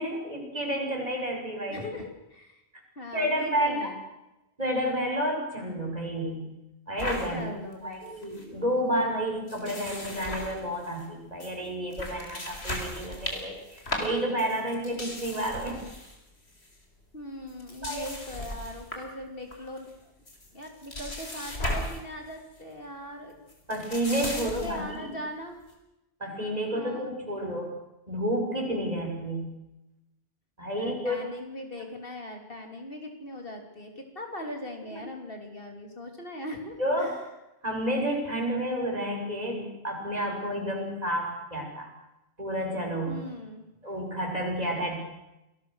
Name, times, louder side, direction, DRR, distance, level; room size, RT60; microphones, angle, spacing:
voice 1, 0.0-1.8 3.1-3.9 4.6-6.4 6.9-7.5 7.8-15.8 17.8-18.1 23.7-25.2 26.2-27.7 28.1-29.5 30.6-31.2 36.8-37.1 37.6-41.9 42.4-43.2 43.8-45.0, equal, 40° right, 1 dB, 6.4 m, -30 dB
voice 2, 1.7-2.6 3.0-4.0 7.3-8.0 17.1-20.1 20.5-23.4 24.3-25.6 26.7-27.1 30.7-37.1 43.1-43.7, left 1 dB, 60° left, 3 dB, 3.6 m, -40 dB
sound 1, 7.0-7.3 7.7-7.8 8.1-8.4 9.5-11.1 11.4-11.5 11.9-16.2 16.5-16.8 17.5-19.1 19.5-19.9 20.3-22.0 22.3-22.6 23.5-24.9, left 1 dB, 75° left, 4.7 m, -36 dB
27.5 x 20.0 x 6.5 m, 0.93 s
omnidirectional pair, 1.1 m